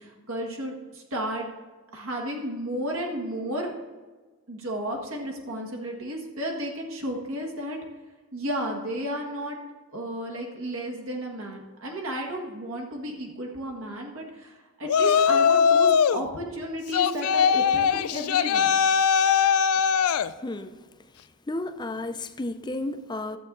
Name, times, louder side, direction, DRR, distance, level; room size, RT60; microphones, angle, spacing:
voice 1, 0.0-1.5 1.9-3.7 4.5-7.8 8.3-9.6 9.9-18.7, equal, 70° right, 1.6 m, -33 dB
Yell, 14.9-16.2 16.9-20.3, left 7 dB, 85° left, 0.4 m, -21 dB
voice 2, 20.4-20.8 21.5-23.4, left 2 dB, 20° left, 0.5 m, -32 dB
13.0 x 7.4 x 3.9 m
head